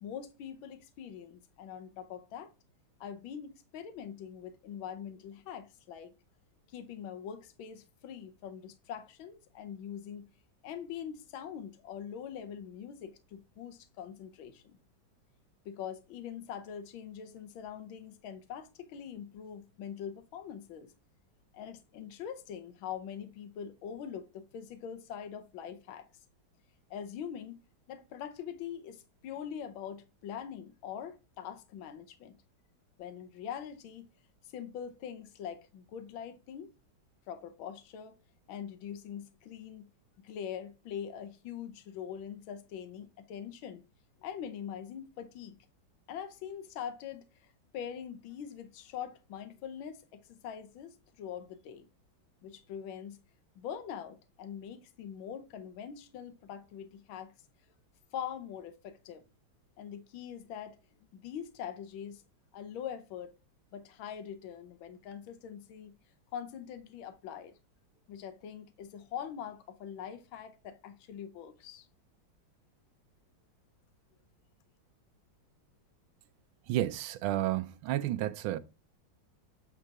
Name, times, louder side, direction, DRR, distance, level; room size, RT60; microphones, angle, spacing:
voice 1, 0.0-2.5 3.0-6.1 6.7-10.3 10.6-14.8 15.6-20.9 21.5-26.1 26.9-27.6 27.9-32.4 33.0-34.1 34.5-36.7 37.3-38.2 38.5-39.9 40.2-43.8 44.2-45.6 46.1-47.2 47.7-51.9 52.4-53.2 53.6-57.3 58.1-59.2 59.8-60.8 61.2-62.2 62.5-63.3 63.7-65.9 66.3-67.5 68.1-71.9, left 8 dB, 80° left, 1.6 m, -43 dB
voice 2, 76.7-78.6, right 13 dB, 85° right, 1.5 m, -31 dB
8.7 x 3.7 x 4.7 m
omnidirectional pair, 2.2 m